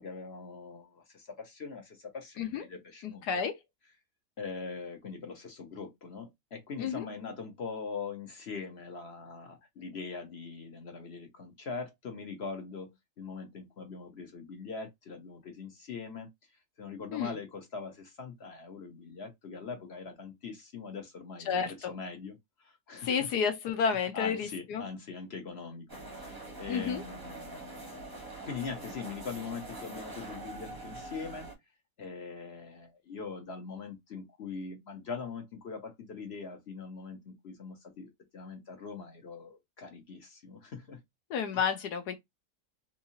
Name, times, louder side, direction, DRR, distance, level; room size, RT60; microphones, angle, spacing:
voice 1, 0.0-3.2 4.4-16.3 16.8-23.3 24.0-27.7 28.4-31.5 32.0-41.0, left 5 dB, 45° left, 0.9 m, -42 dB
voice 2, 3.0-3.5 6.8-7.1 17.1-17.3 21.5-21.7 23.0-24.8 26.7-27.0 41.3-42.2, left 6 dB, 70° left, 1.2 m, -30 dB
sound 1, 25.9-31.5, right 2 dB, 15° right, 0.7 m, -44 dB
3.6 x 2.9 x 2.8 m
omnidirectional pair, 1.9 m